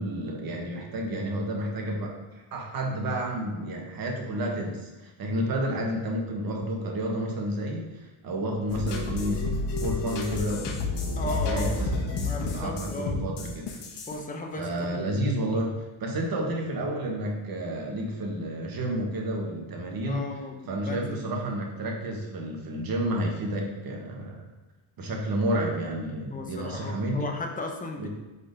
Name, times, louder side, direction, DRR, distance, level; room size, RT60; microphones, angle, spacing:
voice 1, 0.0-2.2 2.5-9.4 9.8-13.7 14.6-15.7 16.0-20.2 20.7-24.4 25.0-27.3 28.0-28.1, right 1 dB, 45° right, 0 dB, 1.5 m, -30 dB
sound 1, 8.7-14.2, left 3 dB, 55° left, 1.3 m, -30 dB
voice 2, 11.2-11.8 12.2-13.2 14.1-15.6 20.1-21.2 26.3-28.1, left 2 dB, 15° left, 2 dB, 0.9 m, -36 dB
4.8 x 4.1 x 5.1 m, 1.1 s
cardioid pair, 95°, 48 cm